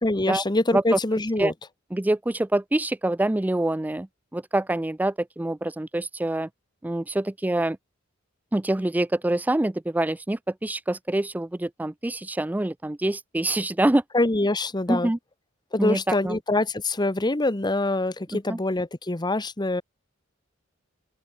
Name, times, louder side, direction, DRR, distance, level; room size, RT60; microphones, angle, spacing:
voice 1, 0.0-1.5 14.1-15.1 15.7-19.8, left 2 dB, 20° left, 1.1 m, -24 dB
voice 2, 1.9-4.1 4.3-6.5 6.8-7.8 8.5-14.0 14.9-15.2 15.8-16.4 18.3-18.6, right 1 dB, 10° right, 0.3 m, -25 dB
open air
head